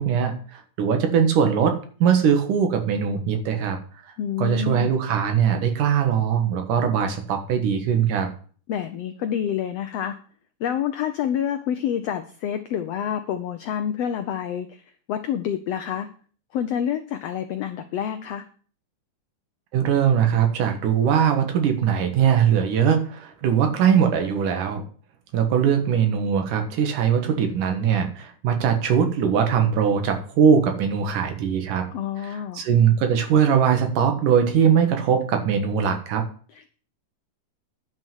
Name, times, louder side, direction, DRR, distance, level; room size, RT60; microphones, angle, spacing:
voice 1, 0.0-3.8 4.1-4.2 4.4-8.3 19.7-24.8 25.3-31.9 32.2-36.2, right 7 dB, 75° right, 6 dB, 3.0 m, -21 dB
voice 2, 4.2-4.9 8.7-10.2 10.6-14.8 15.1-16.1 16.5-18.4 31.9-32.6 36.5-36.7, left 9 dB, 85° left, 8 dB, 1.4 m, -28 dB
10.5 x 6.3 x 7.3 m, 0.43 s
omnidirectional pair, 3.8 m